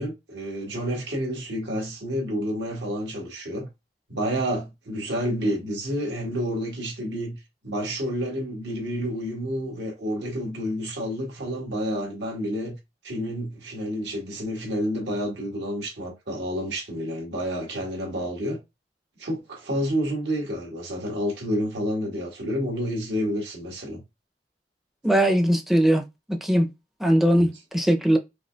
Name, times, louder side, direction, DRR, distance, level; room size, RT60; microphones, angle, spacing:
voice 1, 0.0-3.7 4.1-7.4 7.6-12.8 13.0-18.6 19.2-24.0 27.3-27.5, equal, 80° right, 1.3 m, -29 dB
voice 2, 25.0-26.7 27.0-28.2, equal, ahead, 0.4 m, -20 dB
5.0 x 2.3 x 2.2 m
head